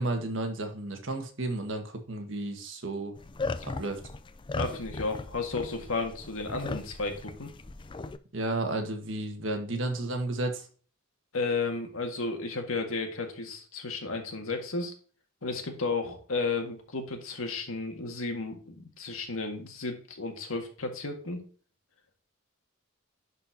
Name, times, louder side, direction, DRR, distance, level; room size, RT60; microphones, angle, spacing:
voice 1, 0.0-3.1 3.8-4.0 8.3-10.7, right 2 dB, 60° right, 5 dB, 1.5 m, -32 dB
sound 1, 3.2-8.2, left 3 dB, 25° left, 0.4 m, -37 dB
voice 2, 4.6-7.5 11.3-14.9 15.4-21.4, left 3 dB, 80° left, 4 dB, 1.8 m, -33 dB
11.0 x 4.4 x 2.8 m, 0.41 s
head